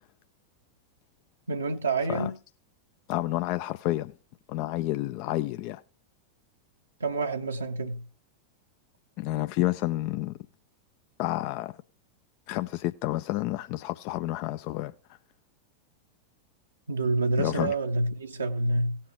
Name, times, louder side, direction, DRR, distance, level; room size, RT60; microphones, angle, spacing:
voice 1, 1.5-2.4 7.0-8.0 16.9-19.0, right 2 dB, 75° right, 0.8 m, -28 dB
voice 2, 3.1-4.1 4.5-5.8 9.2-10.3 11.2-11.7 12.5-14.9 17.4-17.7, left 16 dB, 45° left, 0.4 m, -29 dB
17.5 x 7.3 x 3.1 m
figure-of-eight pair, 90°, 0 cm